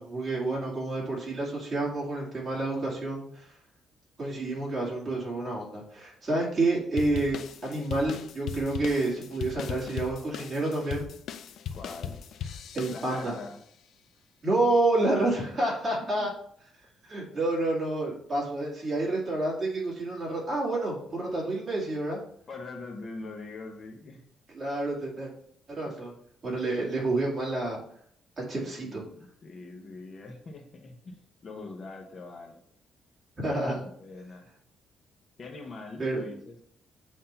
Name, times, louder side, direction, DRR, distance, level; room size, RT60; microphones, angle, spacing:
voice 1, 0.0-3.6 4.2-11.1 12.7-13.4 14.4-16.3 17.0-22.2 24.5-25.3 25.8-26.1 26.4-27.8 28.4-29.0 33.4-33.8 36.0-36.2, right 2 dB, 30° right, -4 dB, 2.4 m, -29 dB
sound 1, 7.0-13.5, left 8 dB, 60° left, 0.5 m, -38 dB
voice 2, 11.7-12.2 12.9-13.6 16.2-16.3 17.1-17.2 22.5-24.2 28.8-32.6 33.8-34.5 35.4-36.6, left 3 dB, 35° left, 2 dB, 0.9 m, -43 dB
7.7 x 2.8 x 5.5 m, 0.65 s
cardioid pair, 145°, 0 cm